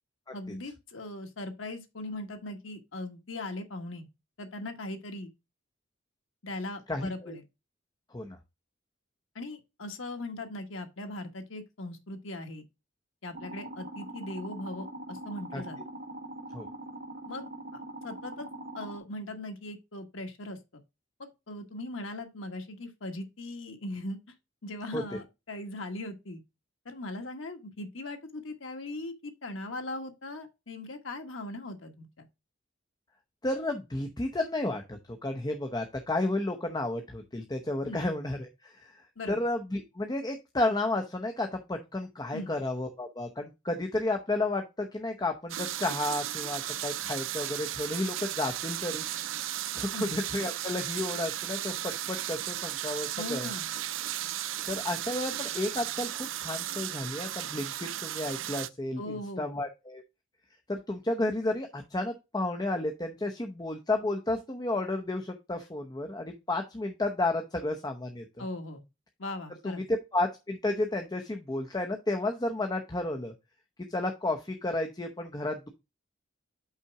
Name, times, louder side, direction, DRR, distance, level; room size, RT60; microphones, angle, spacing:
voice 1, 0.3-4.1 4.4-5.3 6.4-7.4 9.3-12.6 13.2-15.8 17.3-18.5 18.7-20.8 21.2-24.3 24.6-26.4 26.8-32.3 37.8-38.0 39.2-39.4 42.3-42.5 49.9-50.1 53.2-53.7 59.0-59.5 68.4-68.8 69.2-69.8, left 2 dB, 80° left, 1.4 m, -39 dB
voice 2, 6.9-7.3 8.1-8.4 15.5-15.6 16.5-16.7 24.9-25.0 33.4-38.9 39.3-49.1 49.7-53.5 54.7-59.0 59.4-60.0 60.7-68.2 69.6-69.8 70.1-73.3 73.9-75.7, left 2 dB, 20° left, 0.8 m, -32 dB
sound 1, 13.3-19.0, right 1 dB, 50° right, 1.0 m, -42 dB
sound 2, 45.5-58.7, right 13 dB, 75° right, 0.4 m, -35 dB
5.6 x 4.2 x 5.9 m
head